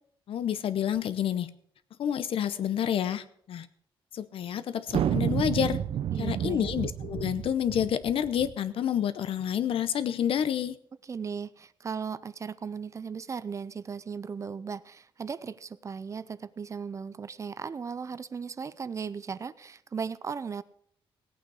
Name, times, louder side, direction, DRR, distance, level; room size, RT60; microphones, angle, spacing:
voice 1, 0.3-1.5 2.0-3.7 4.1-5.8 6.2-10.8, left 9 dB, 70° left, 14 dB, 0.7 m, -29 dB
sound 1, 4.9-8.5, right 9 dB, 70° right, 0.6 m, -30 dB
voice 2, 6.1-6.7 11.0-20.6, right 6 dB, 30° right, 17 dB, 0.4 m, -37 dB
17.0 x 8.8 x 4.8 m, 0.65 s
wide cardioid pair, 145°, 10 cm